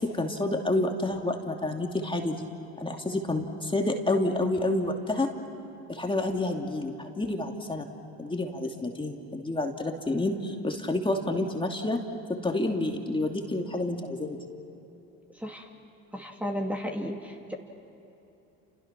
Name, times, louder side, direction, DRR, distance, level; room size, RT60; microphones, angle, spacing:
voice 1, 0.0-2.5 2.8-5.3 5.9-7.9 8.2-12.0 12.3-14.4, left 2 dB, 15° left, 2 dB, 2.7 m, -29 dB
voice 2, 16.1-17.5, equal, 5° right, 1 dB, 2.6 m, -33 dB
30.0 x 28.5 x 6.1 m, 2.9 s
supercardioid pair, 70°, 33 cm